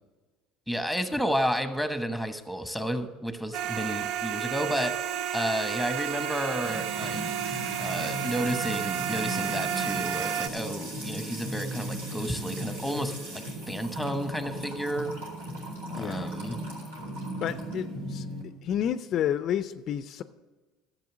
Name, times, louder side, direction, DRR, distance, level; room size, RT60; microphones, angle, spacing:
voice 1, 0.7-4.9 5.3-15.1 15.9-16.6, equal, 5° right, 9 dB, 1.1 m, -32 dB
sound 1, 3.5-10.5, right 9 dB, 60° right, 0.5 m, -31 dB
Music / Water tap faucet / Trickle dribble, 6.6-18.4, right 1 dB, 80° right, 2.5 m, -36 dB
voice 2, 15.9-16.3 17.4-18.3 18.6-20.2, left 10 dB, 50° left, 13 dB, 0.4 m, -30 dB
12.0 x 7.0 x 6.1 m, 1.3 s
hypercardioid pair, 70°, 0 cm